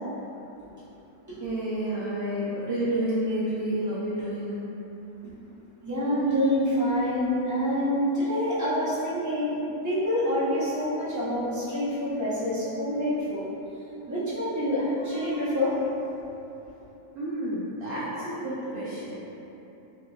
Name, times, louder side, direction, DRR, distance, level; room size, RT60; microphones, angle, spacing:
voice 1, 1.4-4.6 17.1-19.2, right 1 dB, 90° right, -9 dB, 0.5 m, -30 dB
voice 2, 5.8-9.6 9.8-13.4 14.1-15.8, equal, 30° right, -12 dB, 0.3 m, -26 dB
3.5 x 2.8 x 2.3 m, 3.0 s
omnidirectional pair, 1.6 m